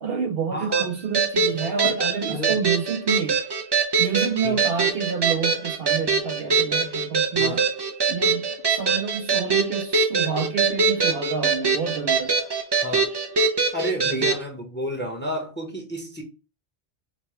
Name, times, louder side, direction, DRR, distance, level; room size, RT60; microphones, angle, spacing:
voice 1, 0.0-3.4 4.0-7.6 8.1-12.3 14.1-14.3, right 6 dB, 60° right, 0.7 m, -28 dB
voice 2, 0.5-0.9 2.3-2.6 4.4-4.6 7.4-7.6 12.8-13.1 13.7-16.2, equal, 10° left, 0.8 m, -31 dB
sound 1, 0.7-14.4, right 4 dB, 40° right, 0.4 m, -23 dB
5.2 x 2.2 x 3.1 m
omnidirectional pair, 1.2 m